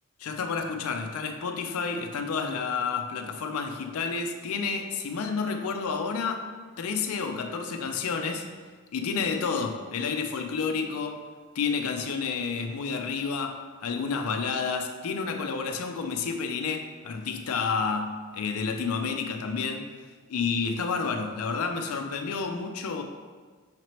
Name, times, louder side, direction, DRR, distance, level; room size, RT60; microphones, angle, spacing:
voice 1, 0.2-6.5 6.8-8.5 8.9-11.2 11.6-19.9 20.3-23.0, left 5 dB, 85° left, 5 dB, 0.4 m, -30 dB
5.7 x 3.0 x 2.9 m, 1.5 s
head